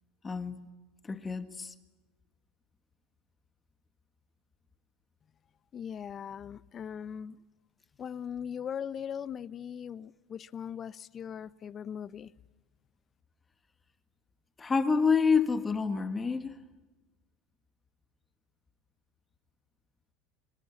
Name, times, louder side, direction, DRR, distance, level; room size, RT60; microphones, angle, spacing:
voice 1, 0.2-0.6 1.0-1.7 14.6-16.6, left 5 dB, 20° left, 1.8 m, -28 dB
voice 2, 5.7-7.4 8.0-12.3, left 8 dB, 35° left, 0.9 m, -39 dB
25.0 x 25.0 x 8.5 m
hypercardioid pair, 100°, 0 cm